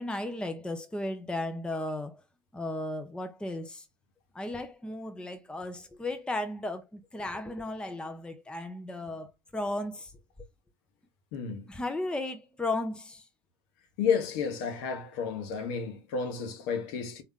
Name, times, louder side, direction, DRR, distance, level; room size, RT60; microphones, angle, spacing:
voice 1, 0.0-2.2 2.5-3.9 4.3-10.1 11.7-13.2, left 2 dB, 5° left, 0.8 m, -35 dB
voice 2, 11.3-11.7 14.0-17.2, left 6 dB, 60° left, 1.2 m, -31 dB
4.1 x 3.4 x 3.6 m
figure-of-eight pair, 65°, 12 cm